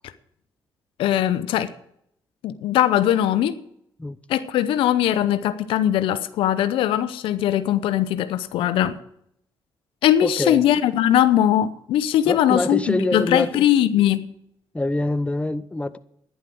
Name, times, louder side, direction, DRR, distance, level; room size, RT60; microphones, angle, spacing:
voice 1, 1.0-1.7 2.4-3.6 4.3-9.0 10.0-14.2, left 11 dB, 90° left, 0.8 m, -20 dB
voice 2, 10.2-10.7 12.3-13.6 14.7-16.0, left 2 dB, 15° left, 0.9 m, -25 dB
11.5 x 10.5 x 7.7 m
cardioid pair, 70°, 9 cm